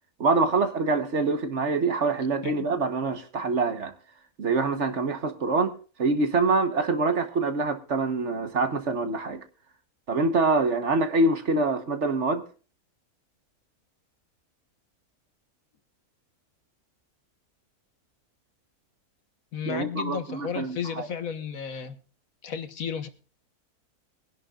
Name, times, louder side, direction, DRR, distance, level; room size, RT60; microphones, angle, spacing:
voice 1, 0.2-3.9 4.4-5.7 6.0-9.4 10.1-12.4 19.6-21.1, right 3 dB, 50° right, 1.4 m, -25 dB
voice 2, 19.5-22.0 22.4-23.1, left 7 dB, 65° left, 1.6 m, -33 dB
22.5 x 11.0 x 2.4 m
omnidirectional pair, 1.6 m